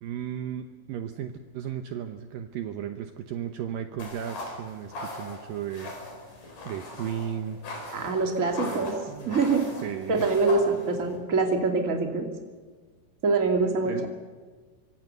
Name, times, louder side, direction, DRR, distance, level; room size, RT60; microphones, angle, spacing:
voice 1, 0.0-6.0 6.6-7.6 8.6-9.4 9.8-10.2 13.8-14.0, right 9 dB, 70° right, 6 dB, 2.5 m, -35 dB
sound 1, 4.0-11.2, left 2 dB, 55° left, 6.2 m, -40 dB
voice 2, 7.9-9.0 9.2-9.6 10.1-12.3 13.2-14.1, right 3 dB, 25° right, 3 dB, 2.4 m, -24 dB
25.0 x 25.0 x 6.7 m, 1.5 s
omnidirectional pair, 4.6 m